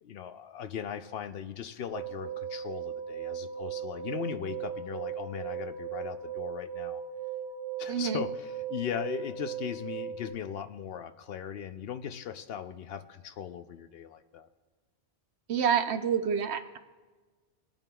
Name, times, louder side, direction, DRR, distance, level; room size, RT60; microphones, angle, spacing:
voice 1, 0.0-7.0 7.8-14.5, left 8 dB, 65° left, 10 dB, 0.7 m, -38 dB
sound 1, 1.9-10.3, right 8 dB, 10° right, 3.3 m, -37 dB
voice 2, 7.9-8.2 15.5-16.8, right 7 dB, 75° right, 9 dB, 0.9 m, -28 dB
21.5 x 8.9 x 2.3 m, 1.3 s
omnidirectional pair, 1.1 m